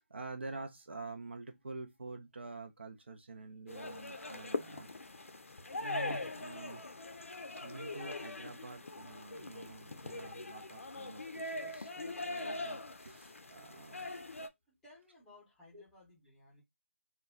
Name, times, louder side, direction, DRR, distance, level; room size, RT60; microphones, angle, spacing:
voice 1, 0.0-4.9 5.8-6.8 7.6-14.2 15.7-15.8, right 3 dB, 55° right, 0.5 m, -47 dB
sound 1, 3.7-14.5, left 2 dB, 75° left, 0.5 m, -42 dB
voice 2, 14.7-16.6, left 2 dB, 5° left, 0.7 m, -60 dB
2.2 x 2.0 x 3.5 m
figure-of-eight pair, 160°, 7 cm